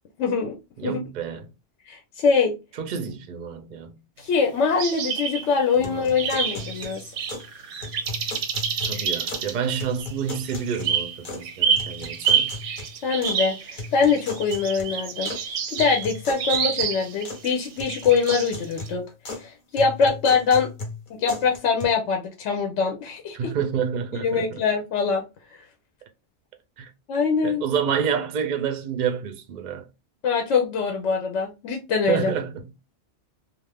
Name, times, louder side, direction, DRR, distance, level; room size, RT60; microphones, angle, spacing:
voice 1, 0.2-0.5 0.8-1.0 1.9-2.5 4.2-7.0 13.0-15.3 15.7-19.0 19.4-20.7 21.2-23.5 24.1-25.2 27.1-27.6 30.2-32.3, left 5 dB, 75° left, 0.9 m, -23 dB
voice 2, 0.8-1.5 2.8-4.0 5.8-6.1 8.8-12.5 23.3-24.6 26.8-26.9 27.4-29.9 32.1-32.7, right 7 dB, 55° right, 0.5 m, -28 dB
sound 1, 4.8-5.7 6.2-18.9, right 7 dB, 85° right, 1.0 m, -28 dB
sound 2, 5.8-7.5 7.8-9.5 9.8-11.5 11.8-13.4 13.8-15.4 15.8-17.5 17.8-19.5 19.8-21.8, left 2 dB, 45° left, 0.9 m, -37 dB
2.5 x 2.4 x 3.4 m
omnidirectional pair, 1.2 m